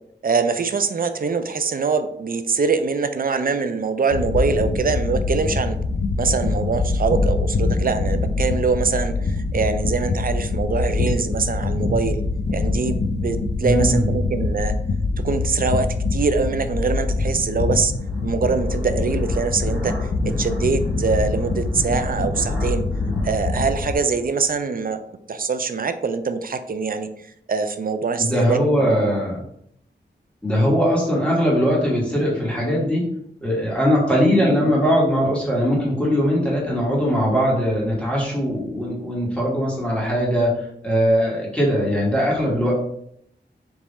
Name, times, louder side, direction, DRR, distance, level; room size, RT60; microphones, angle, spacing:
voice 1, 0.2-5.8 6.2-12.2 12.5-14.7 15.2-17.9 18.2-20.0 20.2-22.8 23.2-25.0 25.3-27.1 27.5-29.1 34.4-34.7, right 5 dB, 50° right, 9 dB, 0.4 m, -23 dB
sound 1, 4.1-23.9, left 3 dB, 60° left, 0.5 m, -24 dB
voice 2, 13.6-14.0 28.2-29.4 30.4-33.0 33.4-40.5 40.8-42.7, equal, 5° left, -5 dB, 1.7 m, -20 dB
sound 2, 15.1-24.7, right 1 dB, 10° right, 1.5 m, -37 dB
3.5 x 2.9 x 4.2 m, 0.71 s
wide cardioid pair, 95°, 19 cm